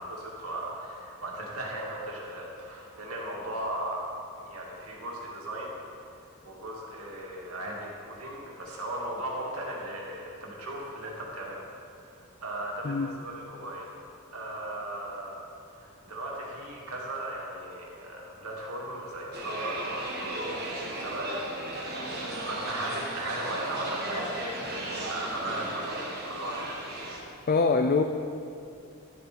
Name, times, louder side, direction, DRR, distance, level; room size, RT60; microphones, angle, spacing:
voice 1, 0.0-5.7 6.1-11.6 12.1-13.9 14.3-15.4 15.6-21.6 22.1-24.6 24.9-26.9, right 1 dB, 85° right, -2 dB, 2.2 m, -37 dB
sound 1, 19.3-27.2, right 1 dB, 45° right, 1.6 m, -35 dB
voice 2, 27.5-28.0, left 4 dB, 40° left, 5 dB, 0.4 m, -23 dB
12.0 x 8.1 x 4.4 m, 2.5 s
head